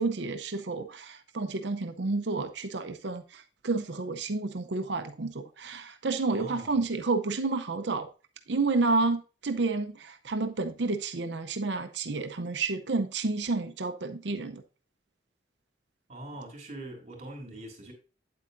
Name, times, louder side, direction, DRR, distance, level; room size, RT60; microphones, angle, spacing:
voice 1, 0.0-8.1 8.5-14.6, right 3 dB, 75° right, 0.7 m, -30 dB
voice 2, 6.3-6.8 16.1-17.9, right 1 dB, 40° right, 3.5 m, -42 dB
8.7 x 8.2 x 2.6 m
head